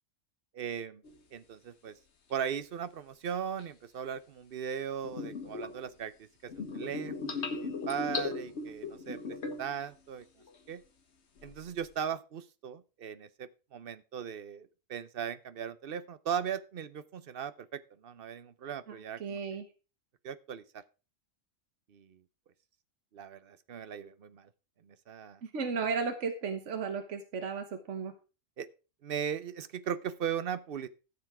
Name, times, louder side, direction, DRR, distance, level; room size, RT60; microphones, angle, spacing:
voice 1, 0.5-1.0 1.3-1.9 2.3-9.2 9.6-10.2 10.7-10.8 11.4-19.4 20.2-20.8 21.9-22.2 23.1-24.5 24.8-25.4 28.6-28.7 29.0-30.9, right 8 dB, 50° right, 14 dB, 0.9 m, -38 dB
sound 1, 1.0-1.2 3.6-3.7 5.0-5.8 6.5-9.8 10.2-10.7 11.4-11.8, left 4 dB, 60° left, 1.5 m, -38 dB
voice 2, 18.9-19.6 25.4-28.1, right 5 dB, 65° right, 7 dB, 1.5 m, -35 dB
13.5 x 7.0 x 4.9 m, 0.33 s
omnidirectional pair, 1.3 m